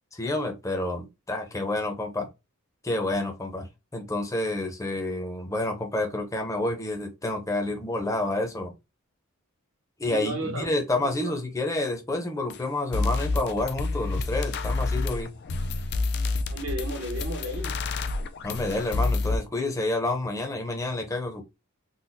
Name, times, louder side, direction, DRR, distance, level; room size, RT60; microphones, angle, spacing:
voice 1, 0.1-2.3 2.8-8.7 10.0-15.3 18.4-21.4, left 2 dB, 15° left, 0.7 m, -29 dB
voice 2, 10.1-10.7 11.0-11.3 16.5-17.8, right 1 dB, 65° right, 1.0 m, -34 dB
sound 1, 12.5-12.6 12.9-19.4, left 3 dB, 50° left, 0.4 m, -28 dB
3.9 x 2.2 x 2.6 m
head